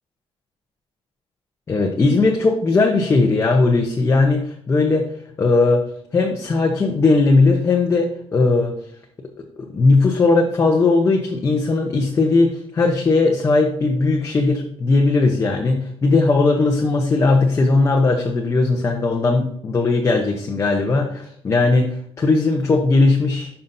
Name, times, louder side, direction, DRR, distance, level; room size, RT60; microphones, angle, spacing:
voice 1, 1.7-5.1 5.4-5.8 6.1-8.7 9.7-23.5, left 3 dB, 25° left, 1 dB, 0.8 m, -18 dB
11.0 x 5.7 x 2.6 m, 0.68 s
cardioid pair, 160°, 11 cm